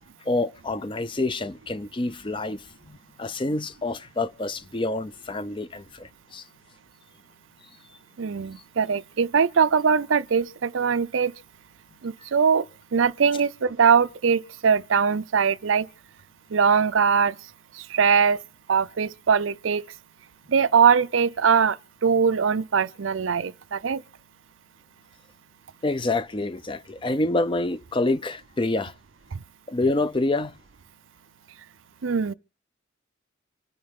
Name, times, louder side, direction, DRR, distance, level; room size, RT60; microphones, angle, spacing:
voice 1, 0.2-6.4 25.8-28.9 29.7-30.5, left 2 dB, 25° left, 0.6 m, -27 dB
voice 2, 8.2-11.3 12.0-12.6 12.9-15.9 16.5-17.3 17.9-18.4 18.7-19.8 20.5-21.8 22.0-24.0 32.0-32.3, right 6 dB, 85° right, 0.6 m, -21 dB
26.5 x 9.5 x 3.7 m
head